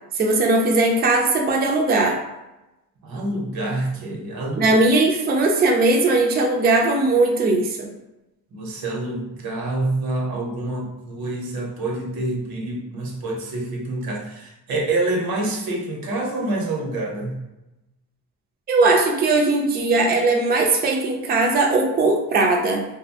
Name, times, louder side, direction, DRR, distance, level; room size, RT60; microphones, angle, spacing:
voice 1, 0.2-2.2 4.6-7.9 18.7-22.8, right 2 dB, 30° right, 1 dB, 0.4 m, -19 dB
voice 2, 3.0-4.7 8.5-17.4, right 2 dB, 80° right, 0 dB, 0.8 m, -27 dB
2.7 x 2.1 x 2.7 m, 0.96 s
cardioid pair, 105°, 35 cm